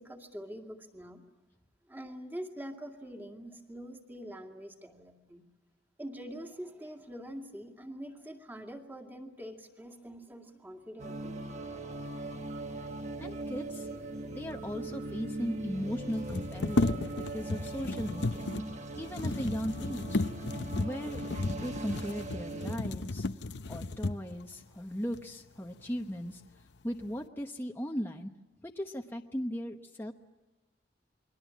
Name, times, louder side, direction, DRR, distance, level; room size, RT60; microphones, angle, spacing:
voice 1, 0.0-1.3 1.9-5.5 6.0-11.5, equal, 10° right, 3 dB, 2.3 m, -45 dB
sound 1, 11.0-22.8, right 2 dB, 40° right, 1.4 m, -40 dB
voice 2, 13.2-13.9 14.3-18.5 19.0-20.2 20.8-21.2 21.5-23.3 23.7-26.4 26.8-28.3 28.6-30.1, equal, 10° left, 2 dB, 1.0 m, -37 dB
sound 2, 14.6-14.7 14.9-15.0 16.1-24.4 25.1-25.2 25.7-26.3 26.7-27.2, left 2 dB, 65° left, 0.8 m, -34 dB
29.0 x 22.5 x 7.3 m, 1.2 s
head